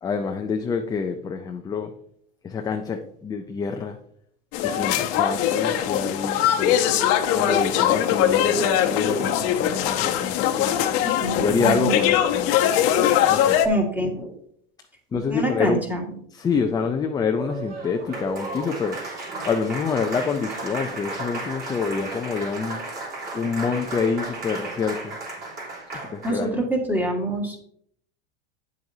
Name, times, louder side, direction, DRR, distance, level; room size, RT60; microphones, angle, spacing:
voice 1, 0.0-1.9 2.4-4.0 4.6-6.9 7.3-10.8 11.4-12.6 13.3-13.6 15.1-15.8 16.3-19.0 19.4-22.8 23.3-25.2 26.0-26.6, left 5 dB, 15° left, 5 dB, 0.4 m, -27 dB
sound 1, 4.5-13.7, left 10 dB, 50° left, 0.9 m, -21 dB
voice 2, 11.2-11.9 13.6-14.4 15.3-16.0 26.2-27.6, right 1 dB, 5° right, 1 dB, 1.7 m, -25 dB
Applause, 17.3-26.5, right 2 dB, 30° right, 3.7 m, -34 dB
9.1 x 7.7 x 2.7 m, 0.66 s
supercardioid pair, 135°, 31 cm